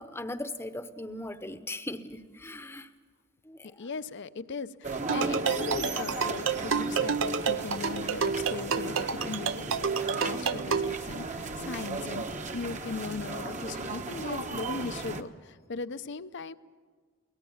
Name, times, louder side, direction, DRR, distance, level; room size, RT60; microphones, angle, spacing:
voice 1, 0.0-2.9 3.4-3.9 5.1-5.3, left 1 dB, 10° left, 10 dB, 0.8 m, -39 dB
voice 2, 3.6-16.5, left 4 dB, 60° left, 13 dB, 0.6 m, -38 dB
sound 1, 4.8-15.2, right 3 dB, 35° right, 1.1 m, -36 dB
sound 2, 5.1-11.0, right 6 dB, 70° right, 0.7 m, -29 dB
23.0 x 18.5 x 7.2 m, 1.5 s
head